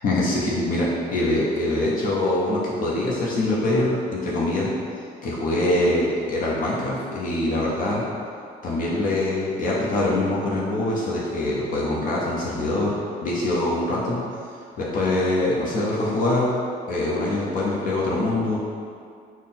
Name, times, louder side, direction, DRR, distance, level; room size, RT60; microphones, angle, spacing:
voice 1, 0.0-4.7 5.2-8.0 8.6-12.9 13.2-14.2 14.8-16.5 16.9-18.6, left 1 dB, 55° left, -5 dB, 0.7 m, -24 dB
3.7 x 2.0 x 4.1 m, 2.3 s
cardioid pair, 110°, 17 cm